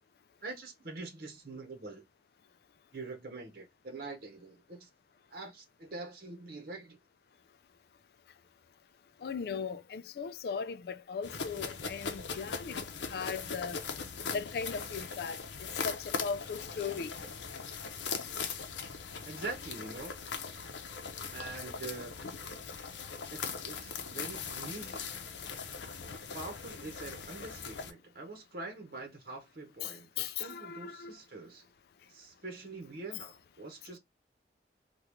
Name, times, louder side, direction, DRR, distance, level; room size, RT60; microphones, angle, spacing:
voice 1, 0.4-2.0 2.9-4.9 5.3-7.0 19.2-20.2 21.3-22.1 23.3-25.1 25.6-25.8 26.3-31.7 32.1-34.0, right 3 dB, 55° right, 0.9 m, -44 dB
voice 2, 9.2-12.8 13.1-13.8 14.3-17.2 29.8-31.2, left 6 dB, 60° left, 0.3 m, -38 dB
sound 1, 11.2-27.9, left 5 dB, 85° left, 0.6 m, -40 dB
3.5 x 2.3 x 3.0 m
head